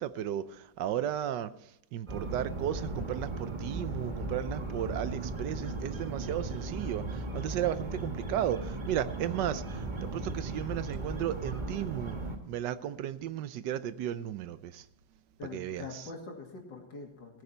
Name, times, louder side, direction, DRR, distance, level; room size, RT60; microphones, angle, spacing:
voice 1, 0.0-1.5 1.9-12.2 12.5-14.8 15.5-16.0, right 11 dB, 75° right, 14 dB, 1.3 m, -34 dB
sound 1, 2.1-12.4, right 2 dB, 30° right, 1.4 m, -37 dB
voice 2, 15.4-17.4, left 4 dB, 75° left, 2 dB, 3.1 m, -44 dB
17.5 x 9.6 x 4.5 m, 0.83 s
omnidirectional pair, 1.9 m